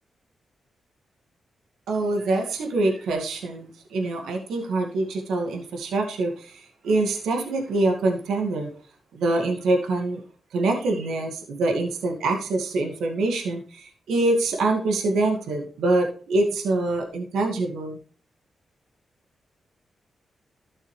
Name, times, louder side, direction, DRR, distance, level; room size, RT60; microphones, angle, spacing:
voice 1, 1.9-8.7 9.1-10.2 10.5-18.0, right 2 dB, 85° right, 2 dB, 2.1 m, -25 dB
12.5 x 6.4 x 3.3 m, 0.40 s
supercardioid pair, 55°, 0 cm